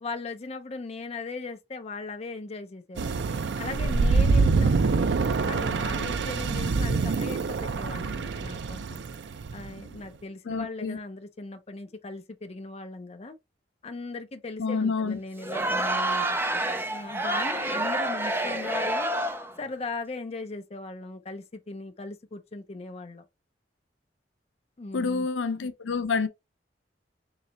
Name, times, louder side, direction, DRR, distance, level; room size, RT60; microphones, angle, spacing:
voice 1, 0.0-3.2 3.6-5.0 5.4-9.0 9.5-13.3 13.8-19.1 19.6-23.2 24.8-25.3, left 3 dB, 35° left, 0.5 m, -38 dB
sound 1, 3.0-9.9, right 4 dB, 70° right, 0.4 m, -25 dB
voice 2, 10.5-11.0 14.6-15.2 24.9-26.3, left 4 dB, 85° left, 0.6 m, -28 dB
Crowd, 15.4-19.6, right 1 dB, 15° right, 0.5 m, -28 dB
3.9 x 3.2 x 2.8 m
head